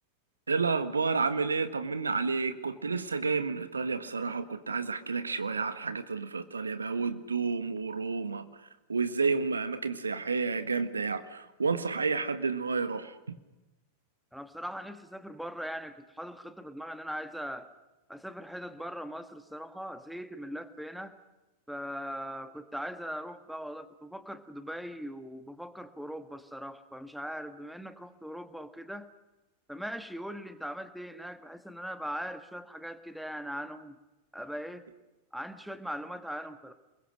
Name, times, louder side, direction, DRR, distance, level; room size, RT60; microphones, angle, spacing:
voice 1, 0.5-8.4 8.9-13.4, right 4 dB, 75° right, 11 dB, 1.5 m, -30 dB
voice 2, 14.3-17.7 18.1-21.2 21.7-29.1 29.7-34.0 34.3-34.9 35.3-36.7, equal, ahead, 11 dB, 1.7 m, -40 dB
29.5 x 22.0 x 6.6 m, 1.0 s
figure-of-eight pair, 90°, 0 cm